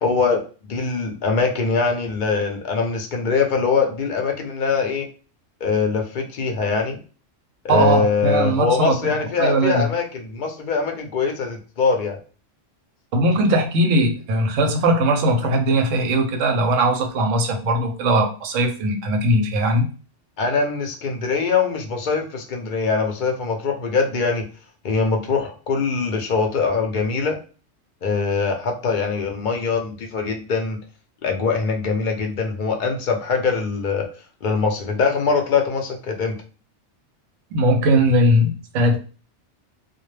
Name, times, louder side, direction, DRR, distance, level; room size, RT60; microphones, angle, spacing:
voice 1, 0.0-5.1 5.6-7.0 7.6-12.2 20.4-24.4 24.8-27.4 28.0-30.8 31.2-34.1 34.4-36.4, left 4 dB, 60° left, 0.5 m, -22 dB
voice 2, 7.7-9.9 13.1-19.9 37.5-39.0, right 1 dB, 90° right, 1.0 m, -19 dB
2.2 x 2.1 x 3.1 m
omnidirectional pair, 1.3 m